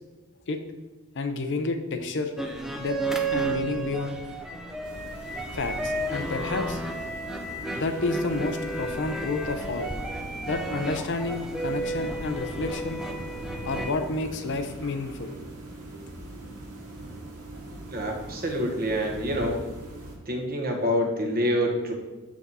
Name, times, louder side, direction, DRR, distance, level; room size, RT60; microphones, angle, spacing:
voice 1, 1.1-2.3 2.8-3.0 3.3-4.2 5.5-6.8 7.7-9.9 10.5-13.0 13.6-15.3, left 3 dB, 55° left, 7 dB, 0.6 m, -30 dB
sound 1, 2.4-13.9, right 2 dB, ahead, 0.5 m, -32 dB
sound 2, 4.8-20.2, right 2 dB, 80° right, 1.7 m, -41 dB
voice 2, 17.9-19.6 20.3-21.9, equal, 40° right, 1 dB, 1.2 m, -26 dB
6.1 x 5.9 x 4.1 m, 1.2 s
head